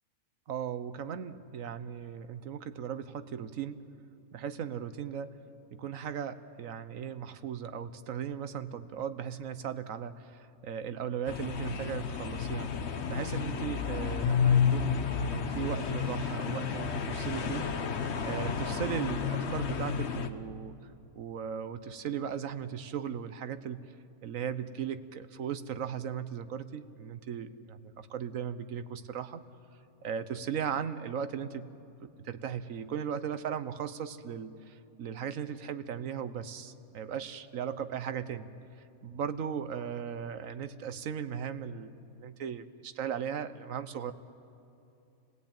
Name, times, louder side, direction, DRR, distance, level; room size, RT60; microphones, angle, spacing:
voice 1, 0.5-3.8 4.3-5.3 5.7-17.7 18.2-20.9 21.2-23.9 24.2-29.4 30.0-31.7 32.0-38.5 39.0-44.1, right 8 dB, 65° right, 12 dB, 1.2 m, -37 dB
sound 1, 11.3-20.3, left 7 dB, 50° left, 1.2 m, -31 dB
28.5 x 17.5 x 8.9 m, 2.7 s
omnidirectional pair, 1.5 m